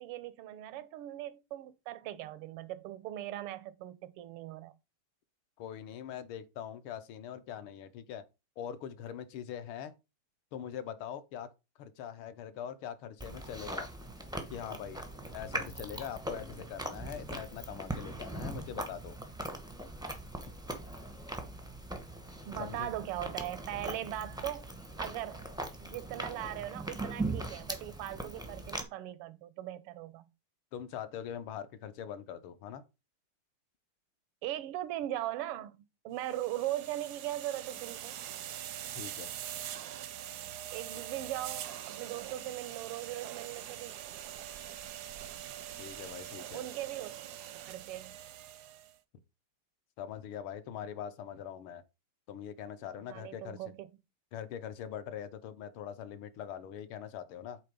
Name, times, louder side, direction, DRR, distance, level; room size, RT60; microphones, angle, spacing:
voice 1, 0.0-4.7 22.5-24.7 25.0-25.5 25.8-30.3 34.4-38.2 40.7-44.0 46.5-47.1 47.5-48.2 53.1-53.9, right 13 dB, 90° right, 1.7 m, -39 dB
voice 2, 5.6-8.2 8.6-9.9 10.5-11.5 11.8-13.9 14.5-15.0 15.3-19.2 22.6-22.9 30.7-32.8 38.9-39.3 45.8-46.6 50.0-51.8 52.3-53.6 54.3-57.6, left 9 dB, 75° left, 1.6 m, -42 dB
Chewing mastication, 13.2-28.8, right 1 dB, 5° right, 0.3 m, -40 dB
sound 1, 36.2-48.9, right 11 dB, 75° right, 0.9 m, -43 dB
8.3 x 3.4 x 5.1 m
omnidirectional pair, 2.4 m